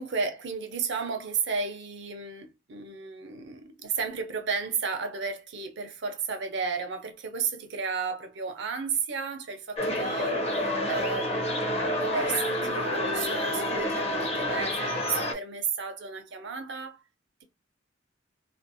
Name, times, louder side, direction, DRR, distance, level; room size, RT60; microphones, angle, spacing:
voice 1, 0.0-11.6 12.0-17.0, right 5 dB, 60° right, 0.6 m, -33 dB
sound 1, 9.8-15.3, left 1 dB, 30° left, 0.5 m, -28 dB
2.5 x 2.0 x 2.5 m
head